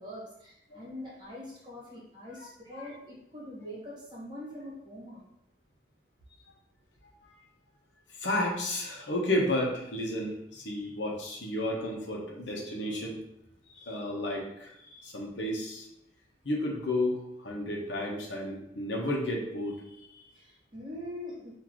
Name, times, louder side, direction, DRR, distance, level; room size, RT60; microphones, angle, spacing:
voice 1, 0.0-5.2 14.1-14.2 20.3-21.6, left 1 dB, 25° right, -6 dB, 1.5 m, -43 dB
voice 2, 8.1-13.2 13.7-15.9 16.4-20.2, left 1 dB, 85° left, -2 dB, 1.1 m, -32 dB
6.1 x 2.8 x 3.1 m, 0.79 s
head